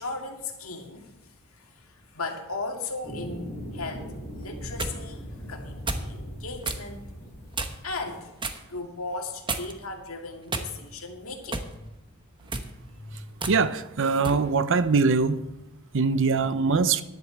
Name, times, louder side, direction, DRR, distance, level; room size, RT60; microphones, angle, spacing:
voice 1, 0.0-7.1 7.8-11.9 12.2-13.5, left 3 dB, 80° left, 2.2 m, -37 dB
sound 1, 3.0-8.1, equal, 15° left, 4.0 m, -40 dB
sound 2, 4.4-5.0 5.9-6.1 6.6-6.9 7.5-7.9 8.4-8.6 9.5-9.9 10.5-11.0 11.5-11.7 12.4-12.7 13.4-13.6 14.2-14.4, right 3 dB, 25° right, 1.1 m, -31 dB
voice 2, 13.5-15.5 15.9-17.0, right 4 dB, 65° right, 0.7 m, -22 dB
11.0 x 8.1 x 8.1 m
head